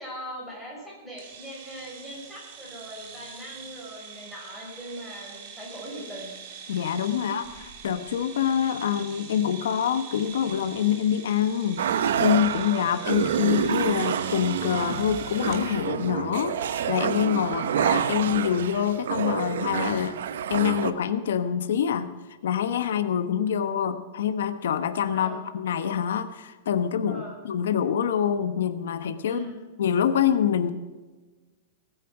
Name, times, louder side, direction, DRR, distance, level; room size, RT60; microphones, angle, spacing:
voice 1, 0.0-6.4 7.2-7.4 17.4-17.7 25.1-25.4 27.1-27.4 29.2-29.6, equal, 5° right, -4 dB, 5.8 m, -40 dB
sound 1, 1.2-15.7, right 6 dB, 45° right, 2.5 m, -44 dB
voice 2, 6.7-7.4 7.8-11.8 12.2-20.2 20.5-22.1 22.4-29.4 29.8-30.7, left 9 dB, 85° left, 10 dB, 1.0 m, -25 dB
sound 2, 11.8-20.9, right 8 dB, 85° right, 0.9 m, -28 dB
19.5 x 9.3 x 5.9 m, 1.3 s
supercardioid pair, 160°, 0 cm